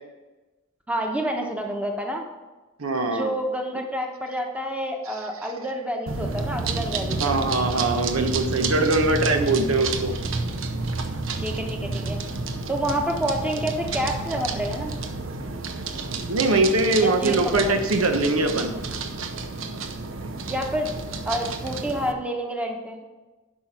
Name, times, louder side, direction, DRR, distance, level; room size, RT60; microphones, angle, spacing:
voice 1, 0.9-2.2 3.1-7.5 11.4-12.2 12.7-14.9 17.0-17.7 20.5-23.0, equal, 5° right, 2 dB, 1.0 m, -28 dB
voice 2, 2.8-3.3 7.2-10.1 16.3-18.7, right 2 dB, 90° right, 6 dB, 1.1 m, -22 dB
sound 1, 6.1-22.1, right 3 dB, 70° right, 0.8 m, -30 dB
11.0 x 6.0 x 6.0 m, 1.2 s
head